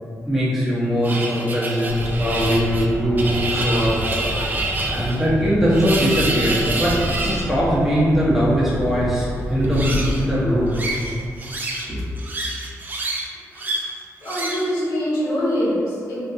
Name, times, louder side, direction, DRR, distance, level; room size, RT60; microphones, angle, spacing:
voice 1, 0.3-3.9 4.4-4.5 4.8-6.9 7.2-10.7 11.9-12.0, equal, 5° right, -9 dB, 0.8 m, -20 dB
sound 1, 1.0-7.5 9.6-10.3 10.7-11.9 12.2-13.2 13.6-13.9 14.2-14.7, right 2 dB, 30° right, 0.3 m, -27 dB
sound 2, 1.9-11.5, equal, 45° left, 0.8 m, -29 dB
voice 2, 14.2-16.2, equal, 90° left, -10 dB, 1.0 m, -24 dB
2.6 x 2.4 x 2.4 m, 2.3 s
cardioid pair, 115°, 6 cm